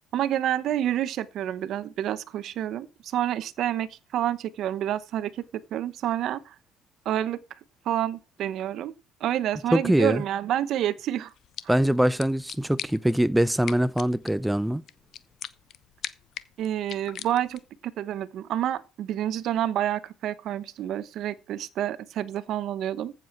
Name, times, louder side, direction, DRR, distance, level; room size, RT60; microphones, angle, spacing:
voice 1, 0.1-5.4 5.7-6.5 7.0-7.4 7.8-8.9 9.2-11.3 16.6-23.1, right 11 dB, 60° right, 1.0 m, -28 dB
voice 2, 9.7-10.2 11.7-14.8, right 1 dB, 5° right, 0.5 m, -23 dB
sound 1, 11.3-17.8, left 10 dB, 55° left, 0.9 m, -42 dB
14.5 x 7.6 x 4.5 m
supercardioid pair, 100°, 0 cm